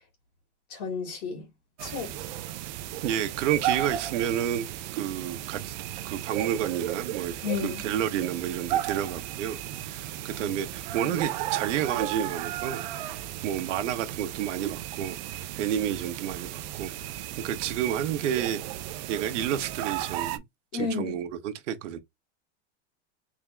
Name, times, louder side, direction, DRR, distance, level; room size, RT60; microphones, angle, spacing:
voice 1, 0.7-1.5 1.8-2.1 7.4-7.8 10.4-10.6 10.9-11.1 20.7-21.2, left 5 dB, 45° left, 1.9 m, -32 dB
sound 1, 1.8-20.4, right 12 dB, 40° right, 0.4 m, -35 dB
voice 2, 3.0-4.7 4.9-5.7 6.0-7.3 7.6-9.6 9.8-12.8 13.4-17.2 17.4-18.6 19.1-20.4 20.7-22.0, right 10 dB, 70° right, 0.9 m, -30 dB
3.6 x 2.7 x 3.3 m
supercardioid pair, 165°, 37 cm